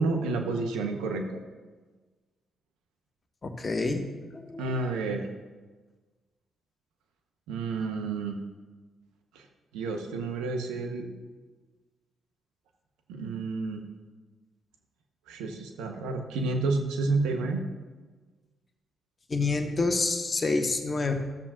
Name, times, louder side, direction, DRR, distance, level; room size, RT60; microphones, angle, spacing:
voice 1, 0.0-1.4 4.6-5.3 7.5-8.4 9.3-9.5 9.7-11.1 13.1-13.8 15.3-17.6, right 3 dB, 85° right, 4 dB, 1.0 m, -30 dB
voice 2, 3.4-4.0 4.3-4.8 19.3-21.1, left 3 dB, 40° left, 4 dB, 1.3 m, -28 dB
14.5 x 7.3 x 2.5 m, 1.3 s
hypercardioid pair, 50°, 0 cm